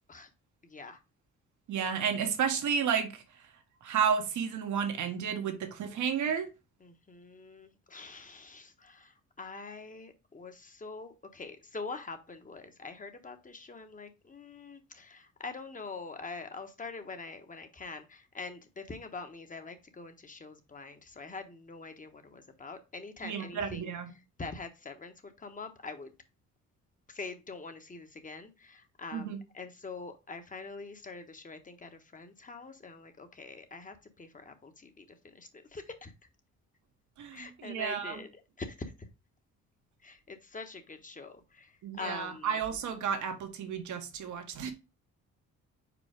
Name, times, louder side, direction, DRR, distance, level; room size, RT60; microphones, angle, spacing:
voice 1, 1.7-3.2 3.8-6.5 23.2-24.1 29.1-29.4 37.2-38.2 41.8-44.7, right 7 dB, 75° right, 1.4 m, -32 dB
voice 2, 6.8-23.9 24.4-26.1 27.1-36.1 37.3-38.3 38.6-38.9 40.0-41.7 42.0-42.5, left 4 dB, 25° left, 1.2 m, -44 dB
5.0 x 4.5 x 5.1 m
cardioid pair, 90°, 30 cm